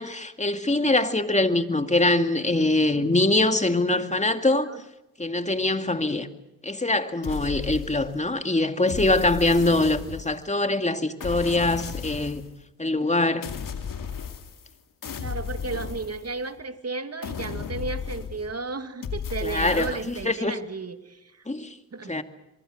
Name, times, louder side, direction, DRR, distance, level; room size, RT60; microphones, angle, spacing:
voice 1, 0.0-4.7 5.2-6.3 6.6-12.4 12.8-13.5 19.4-20.5 21.5-21.7 22.1-22.2, left 2 dB, 20° left, 2.4 m, -23 dB
sound 1, 7.2-8.3 8.9-10.5 11.2-12.5 13.4-14.7 15.0-16.6 17.2-18.6 19.0-20.3, left 6 dB, 70° left, 2.5 m, -34 dB
voice 2, 15.2-21.4 21.9-22.2, right 4 dB, 45° right, 2.3 m, -34 dB
23.5 x 23.5 x 6.7 m
supercardioid pair, 45°, 34 cm